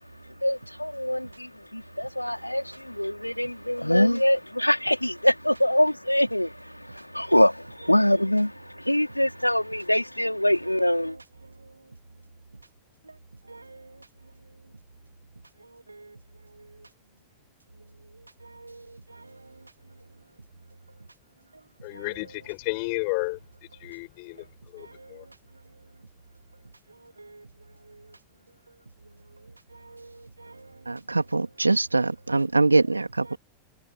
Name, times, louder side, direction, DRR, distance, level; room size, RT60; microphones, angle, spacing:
voice 1, 0.4-6.5 7.1-8.5 8.9-11.1, left 1 dB, 90° left, 4.3 m, -24 dB
voice 2, 21.8-23.4 23.8-24.4 24.7-25.2, left 33 dB, 45° left, 7.6 m, -32 dB
voice 3, 30.9-33.4, right 3 dB, 80° right, 3.0 m, -23 dB
figure-of-eight pair, 90°, 0 cm